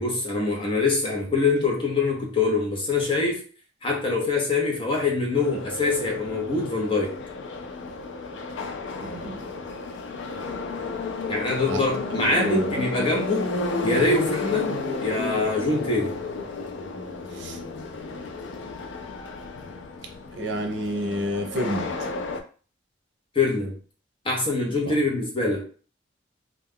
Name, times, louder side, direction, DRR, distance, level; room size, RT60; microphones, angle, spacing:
voice 1, 0.0-3.4 3.8-7.2 11.3-13.5 13.8-16.1 23.3-23.7 24.2-25.6, left 3 dB, 30° left, 0 dB, 0.7 m, -24 dB
Subway metro underground, 5.3-22.4, left 3 dB, 80° left, 0.4 m, -32 dB
voice 2, 9.0-9.5 11.7-11.8 12.1-12.8 17.3-17.6 20.3-22.1 24.9-25.0, equal, 70° right, 3 dB, 0.6 m, -30 dB
2.3 x 2.2 x 3.5 m, 0.39 s
head